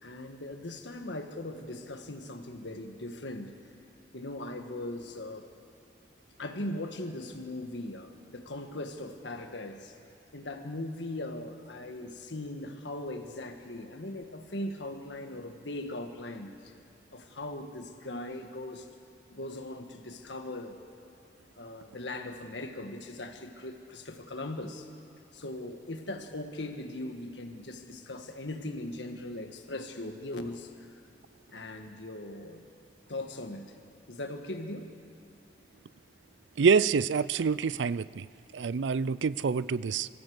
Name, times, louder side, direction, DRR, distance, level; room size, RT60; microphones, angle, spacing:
voice 1, 0.0-3.5 4.1-5.5 6.4-9.9 10.3-16.5 17.1-18.9 19.3-20.8 21.6-24.9 25.3-30.7 31.5-32.6 33.1-33.7 34.1-34.9, left 1 dB, 85° left, 6 dB, 1.6 m, -39 dB
voice 2, 36.6-38.3 38.5-40.1, right 5 dB, 85° right, 19 dB, 0.4 m, -26 dB
24.0 x 14.5 x 8.0 m, 2.5 s
head